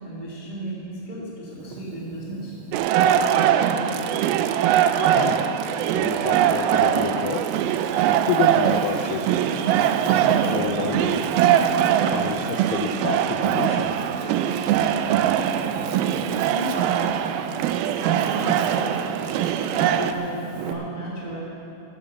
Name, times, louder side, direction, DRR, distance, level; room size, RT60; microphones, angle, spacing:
voice 1, 0.0-2.5 16.2-17.4 17.9-19.1 19.3-21.4, right 1 dB, 30° right, -6 dB, 0.8 m, -34 dB
Wind, 1.5-4.4 4.9-6.2 6.8-20.7, right 5 dB, 70° right, 2.3 m, -36 dB
sound 1, 2.7-20.1, right 10 dB, 90° right, 2.1 m, -22 dB
voice 2, 5.9-7.5 8.3-9.3 10.1-11.2 12.1-13.9, left 8 dB, 80° left, 4 dB, 2.3 m, -29 dB
13.5 x 11.0 x 7.1 m, 2.9 s
omnidirectional pair, 4.9 m